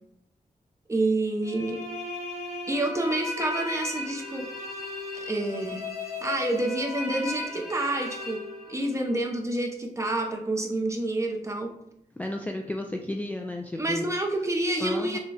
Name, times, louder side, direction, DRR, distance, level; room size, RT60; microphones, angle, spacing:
voice 1, 0.9-1.8 2.7-4.5 5.1-8.4 8.7-11.7 13.7-15.2, right 2 dB, 20° right, 2 dB, 0.8 m, -28 dB
sound 1, 1.4-9.2, left 2 dB, 80° left, 1.3 m, -36 dB
voice 2, 12.2-14.0 14.8-15.2, left 1 dB, 10° left, 2 dB, 0.3 m, -32 dB
6.4 x 2.3 x 3.3 m, 0.73 s
wide cardioid pair, 130°, 15 cm